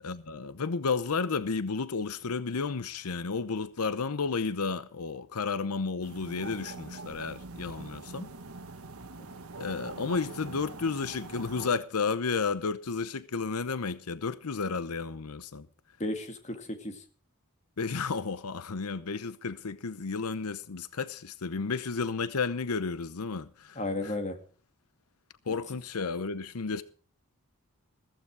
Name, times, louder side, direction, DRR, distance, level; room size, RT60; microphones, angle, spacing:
voice 1, 0.0-8.3 9.6-15.7 17.8-24.1 25.5-26.8, left 4 dB, 90° left, 0.8 m, -32 dB
sound 1, 6.0-11.7, right 3 dB, 80° right, 1.5 m, -43 dB
voice 2, 16.0-17.0 23.8-24.4, left 2 dB, 30° left, 2.1 m, -34 dB
15.0 x 14.0 x 4.7 m
head